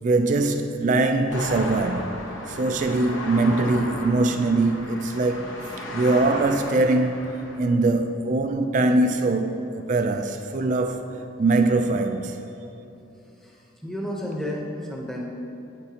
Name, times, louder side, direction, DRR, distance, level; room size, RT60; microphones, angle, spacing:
voice 1, 0.0-2.2 2.5-5.6 5.9-11.1 11.4-12.4, right 2 dB, 40° right, 0.3 m, -22 dB
sound 1, 1.3-7.6, left 1 dB, 80° left, 1.1 m, -35 dB
voice 2, 13.4-15.2, left 1 dB, 5° left, 0.8 m, -32 dB
8.9 x 8.9 x 2.9 m
head